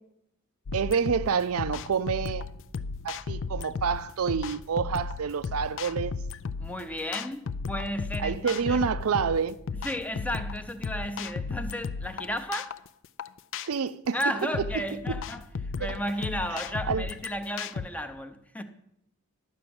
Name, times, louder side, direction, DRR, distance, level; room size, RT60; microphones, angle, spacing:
sound 1, 0.7-17.9, left 4 dB, 60° left, 0.5 m, -35 dB
voice 1, 0.7-2.4 3.0-6.1 8.2-9.6 13.6-14.2 15.8-15.9 16.9-17.1, right 6 dB, 70° right, 0.4 m, -28 dB
voice 2, 6.6-8.9 9.8-12.8 14.1-18.6, equal, 5° left, 0.7 m, -34 dB
11.5 x 6.1 x 8.6 m
head